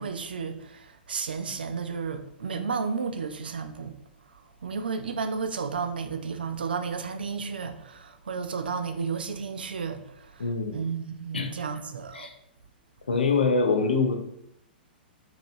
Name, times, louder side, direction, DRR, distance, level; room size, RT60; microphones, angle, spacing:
voice 1, 0.0-4.0 4.3-12.3, right 5 dB, 70° right, 0.3 m, -33 dB
voice 2, 10.4-10.8 11.3-11.5 12.1-12.3 13.1-14.2, left 4 dB, 75° left, 0.5 m, -24 dB
3.1 x 2.8 x 2.6 m
figure-of-eight pair, 105°, 5 cm